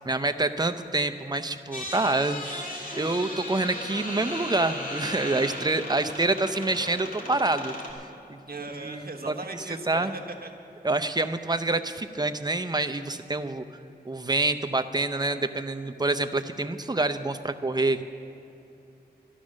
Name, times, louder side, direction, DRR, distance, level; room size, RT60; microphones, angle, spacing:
voice 1, 0.0-2.5 2.9-7.7 8.3-8.4 8.8-9.3 9.9-10.1 10.8-13.6 14.1-18.0, right 2 dB, 25° right, 9 dB, 0.6 m, -27 dB
sound 1, 1.7-7.9, left 1 dB, 55° left, 2.1 m, -36 dB
voice 2, 8.5-10.5 11.0-11.2, right 2 dB, 60° right, 3 dB, 1.3 m, -38 dB
12.5 x 12.0 x 6.3 m, 2.8 s
wide cardioid pair, 65°, 17 cm